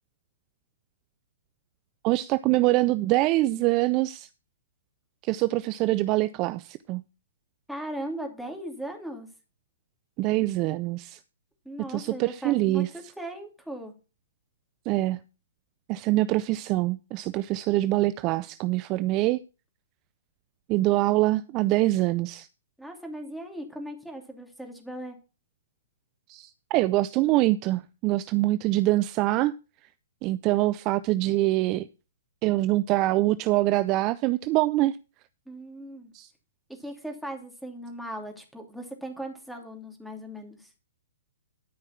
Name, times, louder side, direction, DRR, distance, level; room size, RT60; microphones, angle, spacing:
voice 1, 2.0-4.3 5.2-7.0 10.2-11.2 11.9-12.9 14.9-15.2 15.9-19.4 20.7-22.5 26.3-29.5 30.2-31.9 32.4-35.0 36.1-36.3, right 17 dB, 30° right, 0.4 m, -24 dB
voice 2, 7.7-9.3 11.6-13.9 22.8-25.2 35.5-36.1 36.7-40.7, right 1 dB, ahead, 2.8 m, -38 dB
12.5 x 5.4 x 5.8 m
figure-of-eight pair, 120°, 0 cm